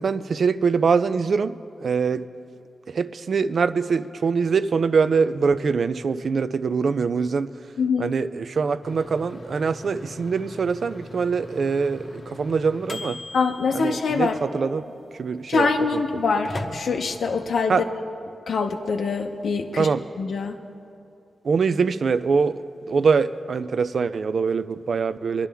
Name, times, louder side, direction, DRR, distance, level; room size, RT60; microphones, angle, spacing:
voice 1, 0.0-1.6 1.8-2.3 2.9-7.5 8.0-13.2 13.7-16.0 17.7-17.8 19.8-20.0 21.4-22.6 22.9-25.5, right 5 dB, 55° right, 13 dB, 0.4 m, -23 dB
voice 2, 7.8-8.1 13.3-14.4 15.5-17.8 18.5-19.9 20.2-20.6, left 5 dB, 85° left, 3 dB, 0.6 m, -24 dB
sound 1, 8.8-17.5, left 2 dB, 35° left, 0.8 m, -41 dB
24.0 x 11.0 x 3.5 m, 2.6 s
wide cardioid pair, 175°, 0 cm